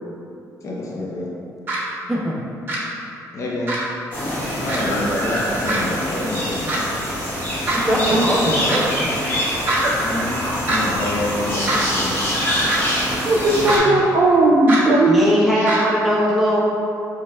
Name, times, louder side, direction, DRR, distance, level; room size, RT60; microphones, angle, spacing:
voice 1, 0.6-1.3 3.3-3.7 4.6-6.6 10.0-12.2, left 2 dB, 50° left, -3 dB, 0.6 m, -28 dB
sound 1, 1.7-1.8 2.7-2.8 3.7-3.8 4.7-4.8 5.7-5.8 6.7-6.8 7.7-7.8 8.7-8.8 9.7-9.8 10.7-10.8 11.7-11.8 12.7-12.8 13.7-13.8 14.7-14.8 15.7-15.8, right 2 dB, 35° right, 1.1 m, -22 dB
sound 2, 4.1-13.8, equal, 30° left, 1.0 m, -24 dB
voice 2, 4.8-5.2 8.1-8.2 13.3-15.2 15.6-15.7, right 2 dB, 55° right, -5 dB, 0.5 m, -17 dB
voice 3, 7.7-9.1 13.4-13.8 15.1-16.6, equal, 5° right, -6 dB, 0.8 m, -20 dB
sound 3, 9.4-14.6, equal, 85° left, 1.0 m, -35 dB
4.7 x 3.2 x 2.2 m, 2.7 s
cardioid pair, 110°, 7 cm